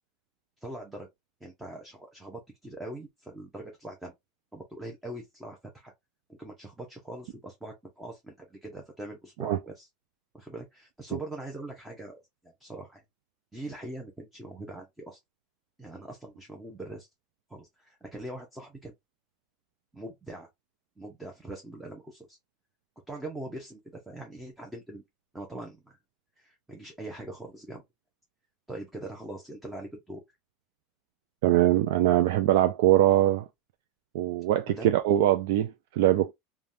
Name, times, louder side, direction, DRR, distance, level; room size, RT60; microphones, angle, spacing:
voice 1, 0.6-1.1 1.4-4.1 4.5-5.9 6.3-9.9 10.3-12.2 12.4-13.0 13.5-15.2 15.8-17.1 17.5-18.9 19.9-20.5 21.0-22.4 23.1-25.0 25.3-26.0 26.4-27.8 28.7-30.2 34.7-34.9, right 1 dB, 5° right, 0.6 m, -42 dB
voice 2, 31.4-33.4 34.1-36.3, right 13 dB, 70° right, 0.3 m, -22 dB
3.4 x 2.2 x 2.5 m
supercardioid pair, 160°, 0 cm